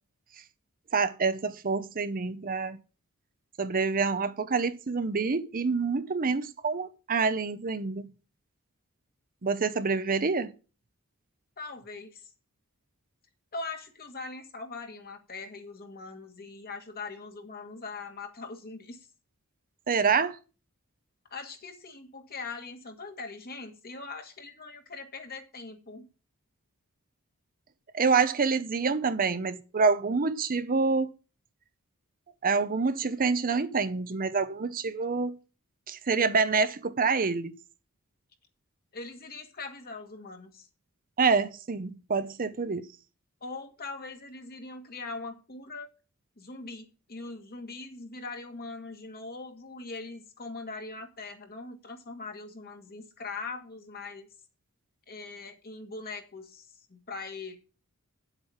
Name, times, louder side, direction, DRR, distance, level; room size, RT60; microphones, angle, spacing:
voice 1, 0.9-2.8 3.6-8.1 9.4-10.5 19.9-20.4 27.9-31.1 32.4-35.3 35.9-37.5 41.2-42.9, right 4 dB, 40° right, 0.7 m, -27 dB
voice 2, 11.6-12.3 13.5-19.1 21.3-26.1 38.9-40.7 43.4-45.9 46.4-54.3 55.1-57.6, left 3 dB, 45° left, 2.0 m, -41 dB
9.1 x 8.1 x 5.7 m
head